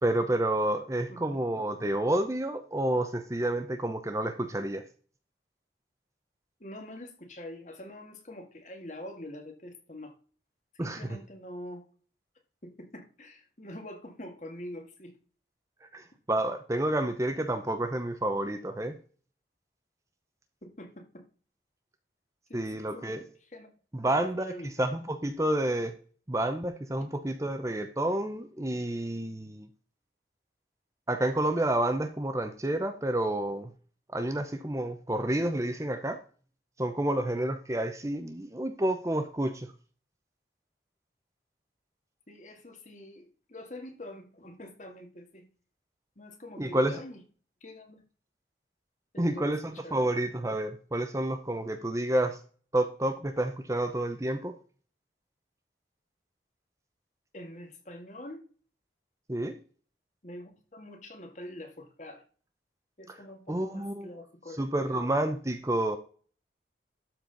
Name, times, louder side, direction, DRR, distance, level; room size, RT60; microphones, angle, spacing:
voice 1, 0.0-4.8 10.8-11.1 15.9-18.9 22.5-23.2 23.9-25.9 26.3-29.7 31.1-33.7 34.1-36.2 36.8-39.7 46.6-46.9 49.2-52.4 52.7-54.6 59.3-59.6 63.5-64.1 64.6-66.0, right 1 dB, 15° right, 8 dB, 0.7 m, -29 dB
voice 2, 6.6-10.1 10.8-11.9 12.6-15.2 20.6-21.2 22.5-23.7 24.2-24.9 42.3-45.4 46.2-47.2 47.6-48.0 49.1-50.0 57.3-58.5 60.2-62.2 63.0-64.6 64.9-65.1, left 1 dB, 40° left, 4 dB, 2.0 m, -45 dB
12.5 x 4.4 x 5.3 m, 0.41 s
head